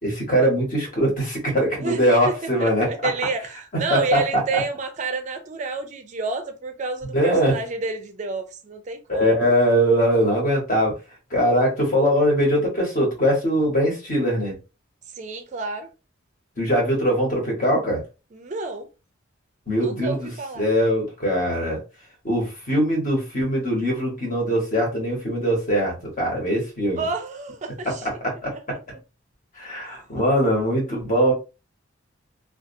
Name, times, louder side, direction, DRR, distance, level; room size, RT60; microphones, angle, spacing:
voice 1, 0.0-2.9 3.9-4.2 4.5-4.6 7.0-7.5 9.1-10.9 11.3-14.5 16.6-18.0 19.7-21.8 22.2-27.0 28.0-28.5 29.6-31.3, equal, 40° left, 1.3 m, -21 dB
voice 2, 2.3-9.3 15.1-15.9 18.3-18.9 19.8-20.7 27.0-28.1 28.5-28.6, right 3 dB, 40° right, 0.4 m, -29 dB
2.5 x 2.3 x 2.6 m
head